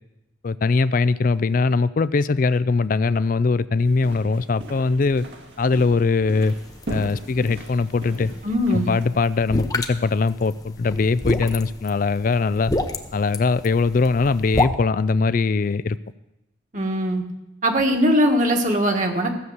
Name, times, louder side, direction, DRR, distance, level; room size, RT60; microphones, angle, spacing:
voice 1, 0.4-5.2 5.6-6.5 6.9-8.3 8.7-12.7 13.1-16.0, left 4 dB, 45° left, 16 dB, 0.4 m, -21 dB
sound 1, 3.8-9.1, right 1 dB, 65° right, 2.1 m, -38 dB
sound 2, 6.4-14.7, left 2 dB, 20° left, 0.8 m, -30 dB
voice 2, 8.4-8.9 16.7-17.2 17.6-19.3, equal, 40° right, 3 dB, 1.7 m, -20 dB
15.5 x 7.1 x 8.0 m, 0.93 s
head